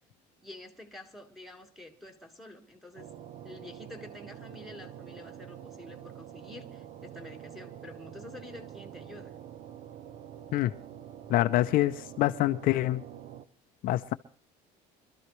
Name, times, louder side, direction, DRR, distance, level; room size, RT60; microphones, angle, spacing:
voice 1, 0.4-3.1 3.4-9.3, left 1 dB, ahead, 1.7 m, -48 dB
sound 1, 3.0-13.5, right 10 dB, 50° right, 0.9 m, -46 dB
voice 2, 11.3-13.0 13.8-14.1, left 16 dB, 60° left, 0.6 m, -26 dB
25.5 x 13.0 x 3.2 m
cardioid pair, 140°, 16 cm